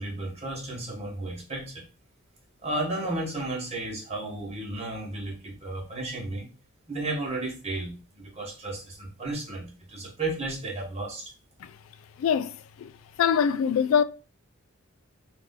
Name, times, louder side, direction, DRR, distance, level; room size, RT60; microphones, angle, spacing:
voice 1, 0.0-1.8 2.6-6.5 6.9-11.3, right 2 dB, 30° right, 1.2 m, -33 dB
voice 2, 12.2-12.9 13.2-14.0, left 7 dB, 70° left, 0.3 m, -24 dB
3.2 x 2.5 x 3.7 m
head